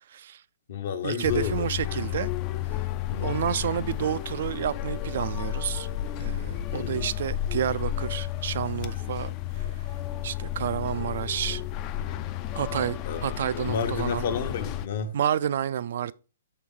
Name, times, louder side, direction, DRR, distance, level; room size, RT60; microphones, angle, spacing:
voice 1, 0.1-0.4 1.0-2.3 3.2-5.9 6.2-9.7 10.2-11.6 12.5-14.3 15.1-16.1, right 9 dB, 60° right, 0.3 m, -30 dB
voice 2, 0.7-1.7 3.1-3.4 6.7-7.0 13.1-15.2, left 6 dB, 55° left, 0.9 m, -31 dB
sound 1, 1.2-14.9, left 12 dB, 30° left, 0.4 m, -32 dB
6.2 x 4.5 x 3.7 m
hypercardioid pair, 145°, 0 cm